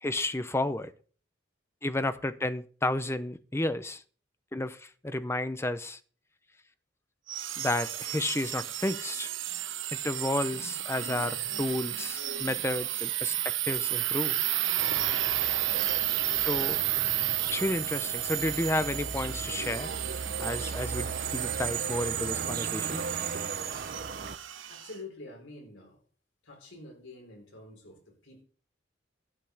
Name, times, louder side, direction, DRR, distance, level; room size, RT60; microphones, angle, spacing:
voice 1, 0.0-0.9 1.8-4.0 4.5-6.0 7.6-9.3 9.9-14.4 16.4-16.8 17.5-19.9 20.4-23.0, left 1 dB, 15° left, 0.7 m, -32 dB
sound 1, 7.3-24.9, right 13 dB, 85° right, 1.1 m, -32 dB
sound 2, 14.8-24.4, right 4 dB, 50° right, 0.7 m, -38 dB
voice 2, 24.7-26.0 26.4-28.4, left 2 dB, 90° left, 4.4 m, -47 dB
12.0 x 5.3 x 8.0 m
head